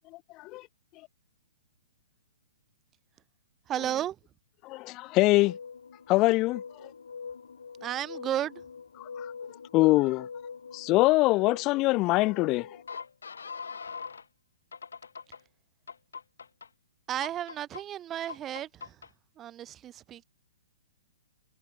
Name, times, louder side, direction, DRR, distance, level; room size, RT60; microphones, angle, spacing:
voice 1, 0.1-0.7 4.6-5.6 6.1-6.9 9.0-9.3 9.7-10.3 10.7-12.8, left 21 dB, 30° left, 2.4 m, -24 dB
voice 2, 3.7-4.2 7.8-8.6 17.1-19.0 19.4-20.2, right 11 dB, 20° right, 5.6 m, -33 dB
sound 1, 5.4-14.2 14.7-15.4 15.9-16.7 17.2-17.8 18.3-19.1, left 5 dB, 65° left, 7.9 m, -43 dB
figure-of-eight pair, 115°, 0 cm